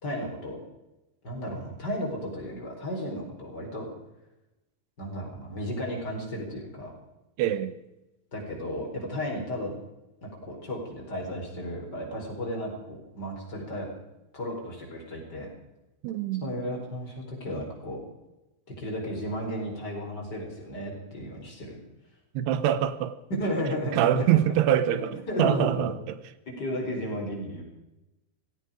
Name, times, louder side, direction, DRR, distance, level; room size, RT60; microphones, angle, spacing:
voice 1, 0.0-0.6 1.2-3.9 5.0-6.9 8.3-9.7 10.2-13.9 14.3-15.5 16.4-18.0 18.8-21.8 23.3-24.3 24.9-25.0 25.3-25.9 26.5-27.6, equal, 25° left, -1 dB, 4.6 m, -33 dB
voice 2, 7.4-7.8 16.0-16.5 22.3-23.2 23.9-26.2, right 11 dB, 90° right, 13 dB, 3.0 m, -25 dB
17.0 x 16.5 x 5.0 m, 0.96 s
omnidirectional pair, 4.6 m